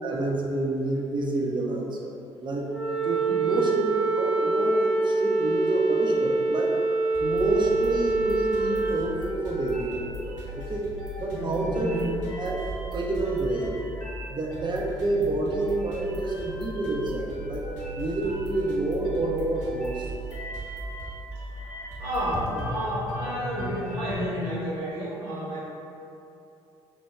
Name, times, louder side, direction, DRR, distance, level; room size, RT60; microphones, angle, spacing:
voice 1, 0.0-2.2 2.4-2.7 3.0-3.8 4.2-6.8 7.2-10.8 11.2-12.6 12.8-13.7 14.3-17.6 18.0-20.0, right 2 dB, 30° right, -1 dB, 0.7 m, -28 dB
Wind instrument woodwind instrument, 2.7-9.0, right 3 dB, ahead, 0.8 m, -25 dB
voice 2, 3.1-3.4 11.3-12.0 15.1-15.2 21.6-25.6, equal, 85° right, -10 dB, 1.1 m, -31 dB
sound 1, 7.1-22.4, equal, 65° right, 0.9 m, -39 dB
sound 2, 8.5-24.3, equal, 25° left, 1.2 m, -40 dB
3.3 x 2.2 x 4.3 m, 2.8 s
hypercardioid pair, 50°, 14 cm